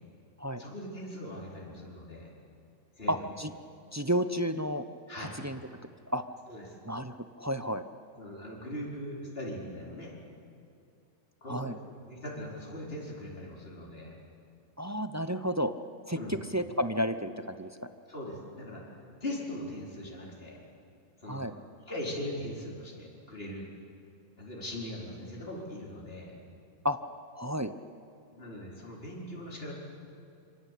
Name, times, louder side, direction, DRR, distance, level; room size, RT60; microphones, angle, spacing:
voice 1, 0.6-2.3 3.0-3.3 5.1-5.4 6.5-6.8 8.2-10.1 11.4-14.2 16.1-16.4 18.1-18.8 19.2-20.6 21.2-21.4 21.9-23.7 24.4-26.4 28.3-29.7, left 1 dB, 45° left, -3 dB, 4.8 m, -40 dB
voice 2, 3.1-3.5 3.9-4.8 5.4-5.6 6.1-6.2 6.9-7.8 11.5-11.8 14.8-15.7 16.1-16.2 16.5-17.7 21.3-21.5 26.8-27.0 27.4-27.7, equal, 15° right, 10 dB, 0.7 m, -31 dB
26.5 x 25.0 x 8.4 m, 2.6 s
omnidirectional pair, 1.4 m